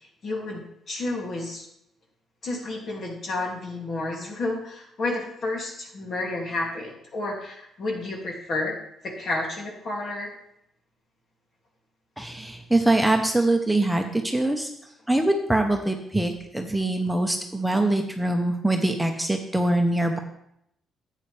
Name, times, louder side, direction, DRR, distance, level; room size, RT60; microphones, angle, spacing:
voice 1, 0.2-1.7 2.4-8.8 9.0-10.3, left 2 dB, 55° left, 0 dB, 2.7 m, -31 dB
voice 2, 12.2-14.7 15.1-20.2, right 1 dB, 5° right, 3 dB, 1.0 m, -23 dB
10.5 x 8.3 x 3.4 m, 0.75 s
cardioid pair, 90°, 0 cm